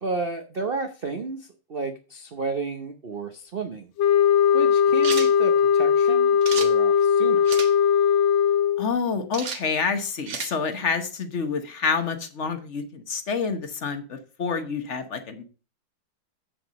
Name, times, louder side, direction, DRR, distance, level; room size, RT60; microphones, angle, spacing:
voice 1, 0.0-3.9 4.5-7.4, right 4 dB, 80° right, 6 dB, 0.5 m, -32 dB
sound 1, 4.0-8.9, left 8 dB, 70° left, 1.3 m, -19 dB
sound 2, 5.0-5.3 6.4-6.7 7.5-7.7 9.3-9.6 10.3-10.5, right 6 dB, 45° right, 1.0 m, -32 dB
voice 2, 8.8-15.4, left 5 dB, 45° left, 8 dB, 1.1 m, -28 dB
7.9 x 6.6 x 5.2 m, 0.35 s
omnidirectional pair, 2.3 m